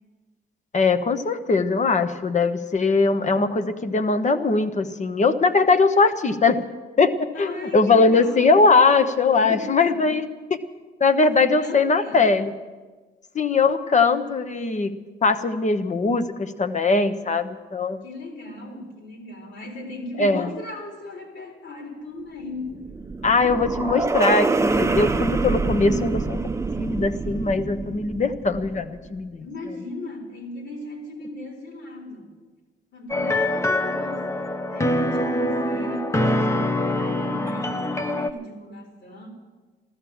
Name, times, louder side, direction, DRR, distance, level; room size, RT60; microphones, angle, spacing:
voice 1, 0.7-6.6 7.0-10.6 11.0-12.5 13.3-14.9 15.2-18.0 20.2-20.5 23.2-26.4 26.8-29.4, left 4 dB, 35° left, 9 dB, 1.1 m, -21 dB
voice 2, 7.3-8.6 9.3-10.2 11.3-12.4 18.0-22.8 29.4-32.4 32.9-39.3, left 2 dB, 65° left, 0 dB, 4.3 m, -37 dB
sound 1, 22.5-29.0, right 3 dB, 15° right, 0.6 m, -26 dB
sound 2, 33.1-38.3, left 1 dB, 15° left, 0.9 m, -24 dB
14.0 x 14.0 x 7.2 m, 1.3 s
cardioid pair, 90°, 20 cm